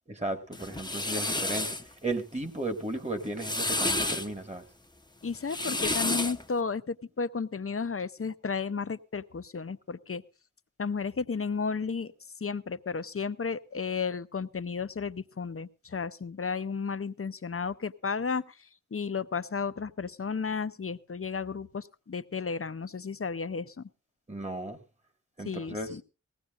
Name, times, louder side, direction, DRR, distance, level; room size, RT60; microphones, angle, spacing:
voice 1, 0.1-1.7 2.0-4.6 24.3-24.8 25.4-25.9, right 2 dB, 20° right, 1.7 m, -35 dB
sound 1, 0.5-1.8 3.2-4.3 5.3-6.4, left 2 dB, 15° left, 0.8 m, -30 dB
voice 2, 5.2-10.2 10.8-12.1 12.4-23.9 25.4-26.0, left 5 dB, 45° left, 0.6 m, -33 dB
19.5 x 16.5 x 2.5 m
wide cardioid pair, 60°, 30 cm